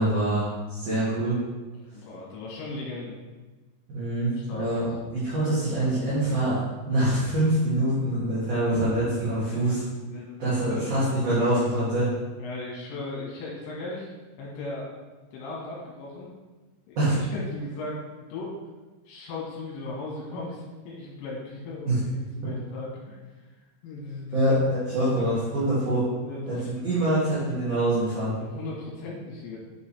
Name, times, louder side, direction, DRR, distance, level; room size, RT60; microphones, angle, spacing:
voice 1, 0.0-1.4 3.9-9.8 10.4-12.1 17.0-17.2 21.9-22.0 24.3-26.0 26.5-26.6 26.8-28.3, right 1 dB, 40° right, -12 dB, 2.6 m, -25 dB
voice 2, 1.7-3.2 4.3-4.8 9.5-10.8 12.4-14.1 14.4-14.9 15.3-16.3 16.9-18.6 19.1-24.5 26.2-26.8 28.4-29.6, left 2 dB, 75° left, -4 dB, 4.0 m, -37 dB
8.8 x 6.7 x 3.4 m, 1.2 s
omnidirectional pair, 5.9 m